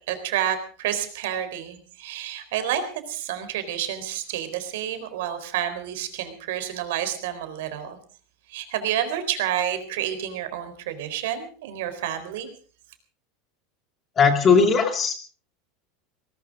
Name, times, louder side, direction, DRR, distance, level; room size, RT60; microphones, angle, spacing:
voice 1, 0.1-8.0 8.5-12.5, right 10 dB, 70° right, 9 dB, 4.0 m, -29 dB
voice 2, 14.2-15.1, left 5 dB, 20° left, 7 dB, 2.2 m, -18 dB
19.5 x 19.0 x 3.7 m, 0.39 s
supercardioid pair, 175°, 0 cm